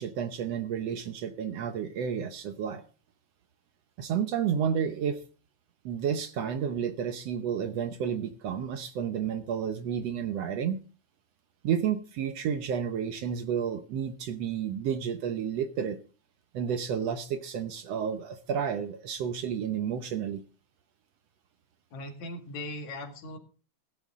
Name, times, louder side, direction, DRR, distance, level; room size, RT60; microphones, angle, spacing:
voice 1, 0.0-2.8 4.0-5.2 5.9-10.8 11.6-16.0 16.5-20.4, right 8 dB, 65° right, 9 dB, 1.8 m, -31 dB
voice 2, 21.9-23.4, left 1 dB, 70° left, 5 dB, 3.1 m, -39 dB
16.0 x 12.0 x 3.6 m, 0.37 s
omnidirectional pair, 3.5 m